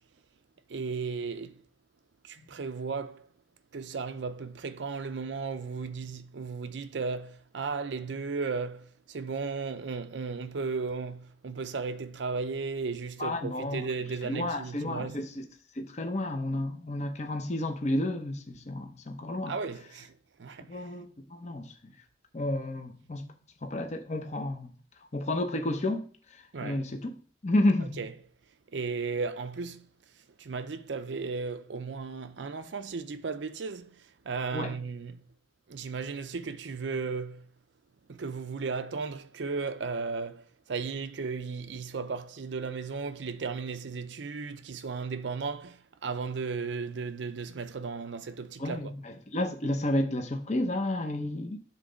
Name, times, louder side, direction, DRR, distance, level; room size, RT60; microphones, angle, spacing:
voice 1, 0.7-1.6 2.2-3.3 3.7-15.2 19.5-20.8 26.5-26.8 27.8-28.1 28.7-29.9 30.4-35.2 35.7-37.5 38.1-48.9, right 4 dB, 85° right, 0.6 m, -35 dB
voice 2, 13.2-13.8 14.2-15.5 15.8-19.5 20.6-21.1 21.3-21.7 22.3-23.3 23.6-24.7 25.1-26.0 26.6-27.1 27.4-28.0 34.5-34.7 48.6-51.6, left 1 dB, 40° left, 0.7 m, -31 dB
7.4 x 3.9 x 5.0 m
head